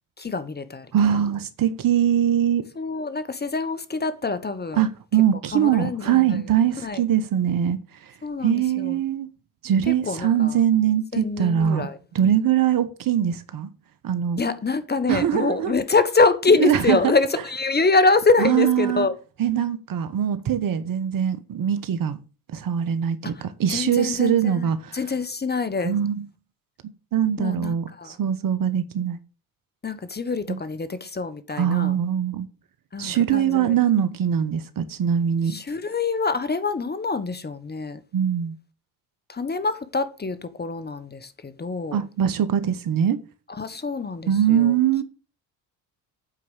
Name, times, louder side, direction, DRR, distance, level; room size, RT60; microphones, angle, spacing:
voice 1, 0.2-0.9 2.8-4.9 5.5-6.4 6.8-7.0 8.2-9.0 9.9-10.6 11.1-12.0 14.4-19.1 23.2-26.0 27.4-28.2 29.8-32.0 32.9-33.8 35.5-38.0 39.3-42.1 43.5-44.8, left 4 dB, 20° left, 1.2 m, -25 dB
voice 2, 0.9-2.6 4.8-7.8 8.4-9.3 9.6-11.9 12.1-13.7 14.0-14.4 15.1-15.7 16.6-17.0 18.4-19.1 19.4-22.2 22.5-25.0 25.8-26.2 27.1-29.2 30.5-30.6 31.6-32.5 33.0-35.6 38.1-38.5 41.9-43.2 44.3-45.0, right 9 dB, 50° right, 1.2 m, -22 dB
8.7 x 4.7 x 7.1 m
supercardioid pair, 70°, 44 cm